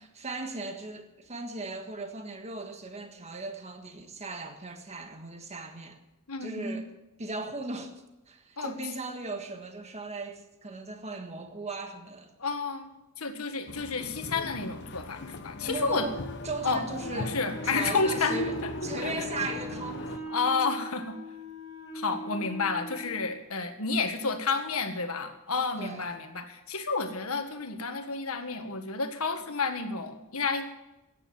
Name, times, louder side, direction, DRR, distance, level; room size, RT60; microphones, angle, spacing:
voice 1, 0.1-6.0 6.4-6.8 7.2-7.9 8.3-12.3 15.6-16.2 16.4-17.4 17.6-20.2 25.8-26.0, right 3 dB, 30° right, 1.6 m, -37 dB
voice 2, 6.3-6.8 8.6-8.8 12.4-12.9 13.2-16.1 16.6-16.8 17.1-18.4 19.0-19.3 20.3-21.2 21.9-30.7, left 4 dB, 70° left, 1.7 m, -30 dB
sound 1, 13.7-20.2, left 2 dB, 50° left, 1.0 m, -38 dB
Wind instrument woodwind instrument, 17.5-23.4, equal, 15° right, 5.3 m, -40 dB
15.0 x 9.8 x 7.6 m
head